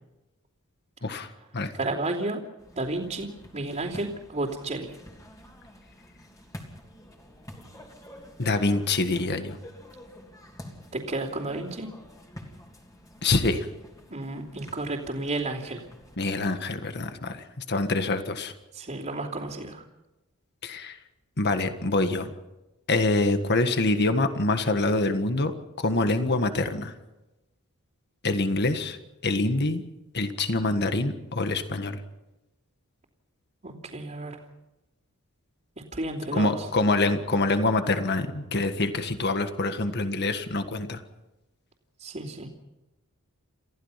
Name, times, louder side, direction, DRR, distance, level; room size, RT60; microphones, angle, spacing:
voice 1, 1.0-1.7 8.4-9.6 13.2-13.7 16.2-18.5 20.6-21.0 21.4-22.3 22.9-25.5 25.8-26.9 28.2-29.0 29.2-29.8 30.1-32.0 36.3-41.0, left 2 dB, 50° left, 8 dB, 1.7 m, -25 dB
voice 2, 1.7-2.4 2.7-4.9 10.9-11.9 14.1-15.8 18.7-19.8 33.6-34.4 35.9-36.6 42.0-42.5, right 2 dB, 35° right, -7 dB, 3.1 m, -32 dB
sound 1, 2.6-16.2, left 1 dB, 15° left, 3.0 m, -48 dB
29.5 x 15.5 x 5.8 m, 0.99 s
head